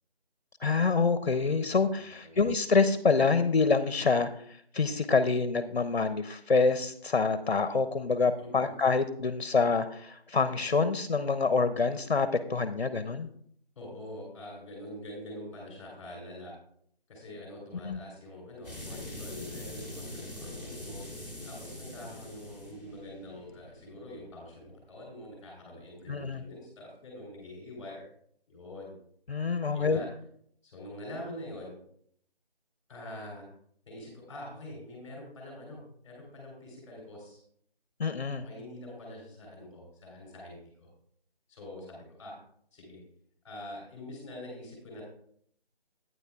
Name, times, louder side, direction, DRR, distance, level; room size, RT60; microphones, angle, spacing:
voice 1, 0.6-4.3 4.7-13.3 17.8-18.0 26.1-26.4 29.3-30.0 38.0-38.4, left 4 dB, 55° left, 11 dB, 0.6 m, -26 dB
voice 2, 8.4-8.7 13.7-16.5 17.1-21.0 21.4-28.1 28.5-28.9 29.7-30.1 30.6-31.7 32.9-33.4 33.9-37.4 38.4-40.9 41.5-42.4 42.7-43.0 43.4-45.0, left 1 dB, 10° left, -2 dB, 3.1 m, -45 dB
sound 1, 18.6-25.1, left 1 dB, 15° right, 2.1 m, -43 dB
11.5 x 9.3 x 2.3 m, 0.67 s
figure-of-eight pair, 170°, 31 cm